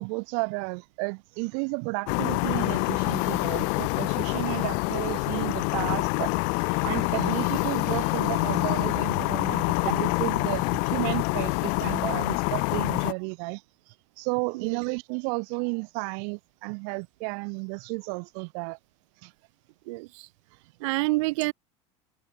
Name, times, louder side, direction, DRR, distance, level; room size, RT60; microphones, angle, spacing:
voice 1, 0.0-6.3 6.7-13.6 14.2-18.8 19.2-19.3, right 40 dB or more, 60° right, 1.0 m, -32 dB
sound 1, 2.1-13.1, left 38 dB, 55° left, 0.6 m, -26 dB
voice 2, 19.9-20.3 20.8-21.5, right 23 dB, 90° right, 0.5 m, -27 dB
cardioid pair, 165°, 16 cm